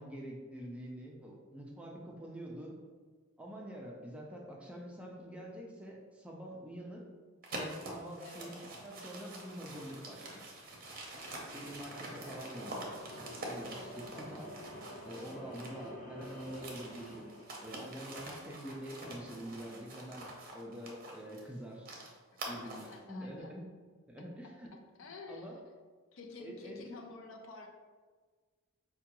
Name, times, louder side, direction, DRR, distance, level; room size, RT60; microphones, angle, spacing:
voice 1, 0.0-2.7 3.4-7.0 7.5-8.5 8.8-10.6 11.5-12.9 13.4-14.5 15.0-17.3 17.6-20.3 20.5-21.9 22.5-23.6 24.1-24.7 25.3-25.6 26.4-27.0, right 1 dB, 5° right, -1 dB, 0.4 m, -46 dB
sound 1, 7.4-15.9 16.2-23.0, right 1 dB, 45° right, 0.6 m, -46 dB
voice 2, 8.2-8.5 12.2-12.5 22.5-23.5 24.7-25.6 26.1-27.7, left 4 dB, 70° left, 2 dB, 0.5 m, -50 dB
sound 2, 10.7-18.6, left 1 dB, 40° left, 0.7 m, -50 dB
4.7 x 2.2 x 2.9 m, 1.5 s
head